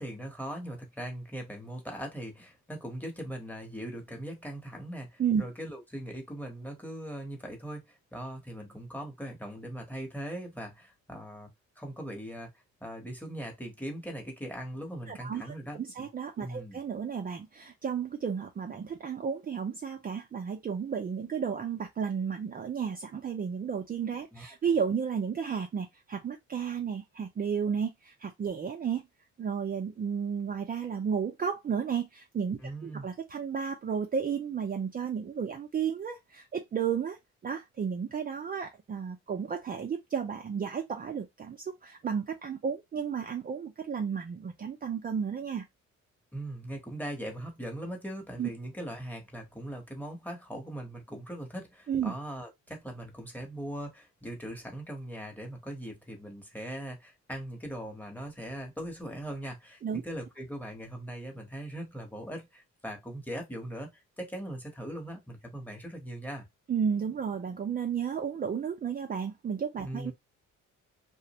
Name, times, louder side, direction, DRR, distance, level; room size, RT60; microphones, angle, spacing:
voice 1, 0.0-11.5 11.8-12.5 12.8-16.1 16.4-16.8 24.3-24.5 32.6-33.0 46.3-66.5 69.8-70.1, right 1 dB, 5° left, 0.9 m, -40 dB
voice 2, 15.1-29.1 29.4-37.2 37.4-45.6 48.4-48.5 51.9-52.1 59.8-60.0 66.7-70.1, right 7 dB, 30° right, 0.4 m, -33 dB
2.4 x 2.0 x 2.8 m
cardioid pair, 90°, 30 cm